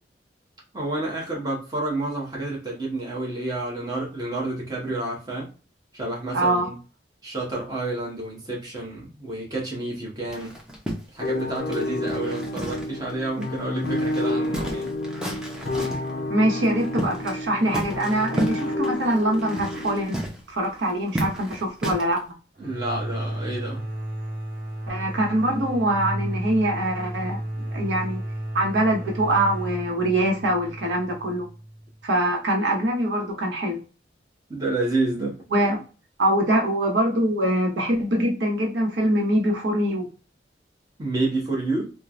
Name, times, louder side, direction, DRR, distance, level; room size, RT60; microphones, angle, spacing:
voice 1, 0.7-5.5 5.9-6.7 7.2-10.5 11.1-14.9 22.6-23.8 34.5-35.4 41.0-41.9, right 2 dB, 20° right, 0.9 m, -29 dB
voice 2, 6.3-6.7 16.3-20.2 20.5-22.2 24.9-28.2 28.5-31.5 32.0-33.8 35.5-35.8 36.2-40.1, right 1 dB, 90° right, 0.8 m, -23 dB
sound 1, 10.3-13.1 13.4-13.5 13.8-16.1 16.6-17.4 17.7-22.2, right 1 dB, 5° right, 0.5 m, -33 dB
sound 2, 11.2-20.1, left 1 dB, 60° left, 0.3 m, -30 dB
sound 3, 22.6-32.1, right 1 dB, 55° right, 0.8 m, -33 dB
3.1 x 2.1 x 2.4 m
head